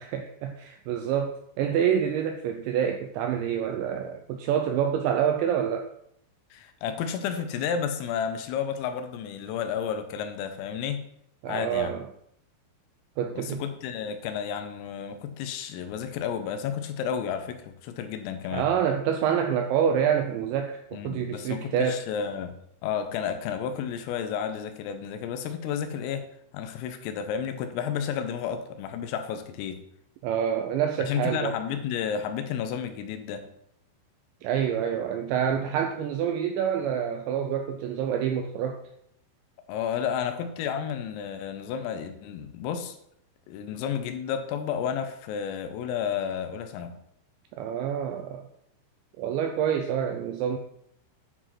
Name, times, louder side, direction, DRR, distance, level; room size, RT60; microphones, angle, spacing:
voice 1, 0.0-5.9 11.4-12.1 13.2-13.6 18.5-22.0 30.2-31.6 34.4-38.8 47.6-48.5 49.2-50.6, right 8 dB, 85° right, 5 dB, 2.6 m, -27 dB
voice 2, 6.5-11.0 11.5-11.9 13.4-18.6 20.9-22.5 22.8-26.3 26.5-29.8 31.1-33.4 39.7-43.0 43.5-46.9, left 8 dB, 85° left, 8 dB, 3.6 m, -31 dB
9.8 x 5.0 x 5.7 m, 0.73 s
omnidirectional pair, 5.9 m